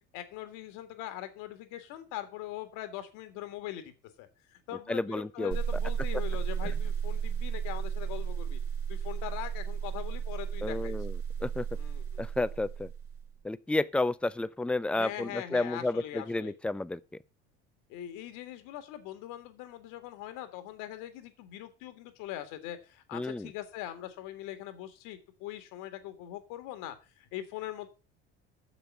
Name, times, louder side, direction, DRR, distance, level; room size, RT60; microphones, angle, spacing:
voice 1, 0.1-8.6 8.9-10.9 11.7-12.2 14.9-16.5 17.9-27.9, left 13 dB, 65° left, 1.9 m, -42 dB
voice 2, 4.9-5.6 6.6-6.7 10.6-11.7 12.2-12.9 13.4-17.0 23.1-23.5, left 2 dB, 5° left, 0.4 m, -31 dB
sound 1, 5.5-13.3, right 7 dB, 40° right, 1.9 m, -34 dB
7.0 x 6.9 x 7.1 m
hypercardioid pair, 75°, 34 cm